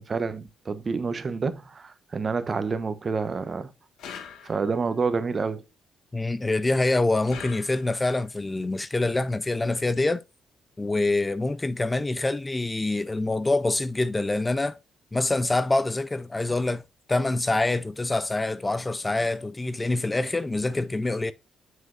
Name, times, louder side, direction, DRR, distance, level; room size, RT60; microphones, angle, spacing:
voice 1, 0.0-3.7 4.4-5.6, right 4 dB, 35° right, 0.9 m, -28 dB
sound 1, 4.0-4.9 7.3-8.2, left 7 dB, 80° left, 1.6 m, -42 dB
voice 2, 6.1-10.2 10.8-14.8 15.1-16.8 17.1-21.3, left 2 dB, 20° left, 0.5 m, -25 dB
7.6 x 6.2 x 2.5 m
cardioid pair, 90°, 0 cm